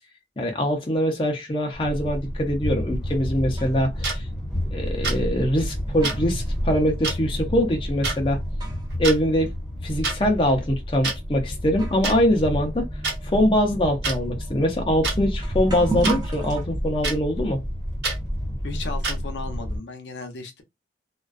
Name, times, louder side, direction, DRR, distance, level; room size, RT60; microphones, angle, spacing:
voice 1, 0.4-4.2 4.7-8.4 9.0-9.5 9.8-12.9 13.2-17.6, equal, 30° left, 0.5 m, -23 dB
sound 1, 1.7-19.8, equal, ahead, 0.9 m, -30 dB
sound 2, 3.0-4.0 4.9-5.0 5.6-9.1 9.4-9.5 10.3-10.4 11.3-11.4 11.7-16.6, right 3 dB, 25° right, 0.6 m, -36 dB
sound 3, 4.0-4.2 5.0-5.2 6.0-6.2 7.0-7.2 8.0-8.2 8.9-9.2 10.0-10.2 11.0-11.2 12.0-12.2 13.0-13.2 14.0-14.2 15.0-15.2 16.0-16.2 17.0-17.2 18.0-18.2 19.0-19.2, right 3 dB, 80° right, 1.0 m, -26 dB
voice 2, 18.6-20.6, left 4 dB, 85° left, 0.6 m, -35 dB
2.4 x 2.2 x 2.3 m
head